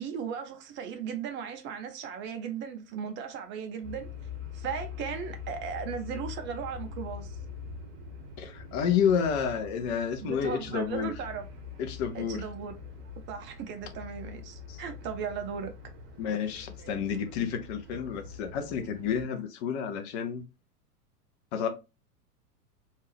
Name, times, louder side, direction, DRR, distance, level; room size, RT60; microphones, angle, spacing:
voice 1, 0.0-4.1 4.5-7.4 10.2-11.5 12.1-12.8 13.3-15.7, right 7 dB, 25° right, 0.6 m, -37 dB
sound 1, 3.8-19.3, left 6 dB, 50° right, 1.1 m, -44 dB
voice 2, 8.4-11.1 11.8-12.4 14.7-14.8 16.2-20.4 21.5-21.7, left 7 dB, 45° left, 1.0 m, -30 dB
3.5 x 2.8 x 3.2 m
figure-of-eight pair, 100°, 47 cm